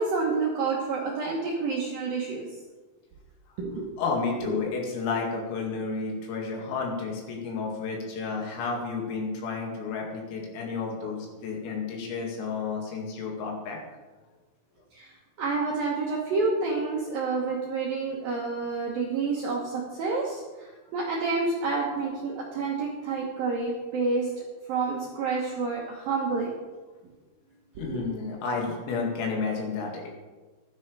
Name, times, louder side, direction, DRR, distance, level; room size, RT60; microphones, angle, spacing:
voice 1, 0.0-2.5 3.6-4.0 4.4-4.5 14.9-15.1 15.4-24.3 24.7-26.5 27.8-28.0, right 4 dB, 75° right, -2 dB, 2.1 m, -29 dB
voice 2, 4.0-13.8 27.8-30.1, left 4 dB, 85° left, 0 dB, 4.8 m, -31 dB
14.5 x 12.0 x 3.4 m, 1.3 s
omnidirectional pair, 5.9 m